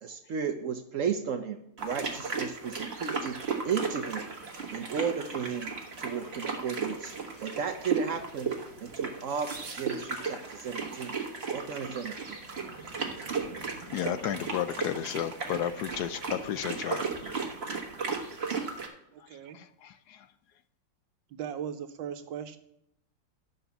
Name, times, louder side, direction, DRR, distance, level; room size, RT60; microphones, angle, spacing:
voice 1, 0.0-3.4 3.6-4.3 4.7-5.7 6.0-7.1 7.4-8.5 8.8-11.1 11.5-12.4, right 7 dB, 65° right, 7 dB, 0.8 m, -34 dB
sound 1, 1.8-18.9, right 4 dB, 35° right, 1.5 m, -35 dB
voice 2, 13.9-17.1 19.8-19.9, left 10 dB, 70° left, 12 dB, 1.0 m, -32 dB
voice 3, 19.1-19.6 21.3-22.6, right 8 dB, 85° right, 9 dB, 1.6 m, -38 dB
11.5 x 5.3 x 6.9 m, 0.75 s
omnidirectional pair, 2.0 m